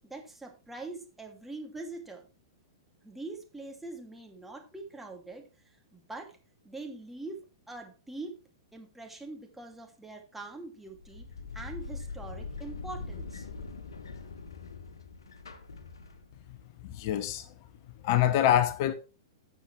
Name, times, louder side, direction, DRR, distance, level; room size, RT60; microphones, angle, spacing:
voice 1, 0.0-2.3 3.0-5.5 5.9-6.4 6.6-8.4 8.7-11.3 11.5-13.5, right 2 dB, 5° right, 2.5 m, -43 dB
sound 1, 10.9-16.5, left 4 dB, 75° left, 1.7 m, -42 dB
voice 2, 16.8-17.5 18.0-18.9, left 11 dB, 50° left, 0.9 m, -25 dB
12.5 x 7.3 x 3.2 m
hypercardioid pair, 110°, 2 cm